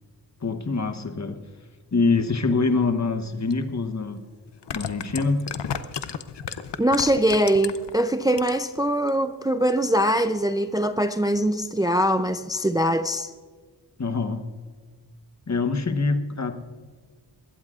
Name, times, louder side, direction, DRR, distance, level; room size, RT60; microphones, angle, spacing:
voice 1, 0.4-1.4 1.9-4.2 4.7-5.5 14.0-14.5 15.5-16.5, left 4 dB, 40° left, 1.0 m, -24 dB
sound 1, 3.5-3.6 4.5-7.9 8.3-8.8 9.1-9.2, left 8 dB, 85° left, 0.7 m, -32 dB
voice 2, 6.8-13.3, right 1 dB, 10° right, 0.5 m, -22 dB
21.0 x 16.5 x 2.4 m
wide cardioid pair, 90°, 41 cm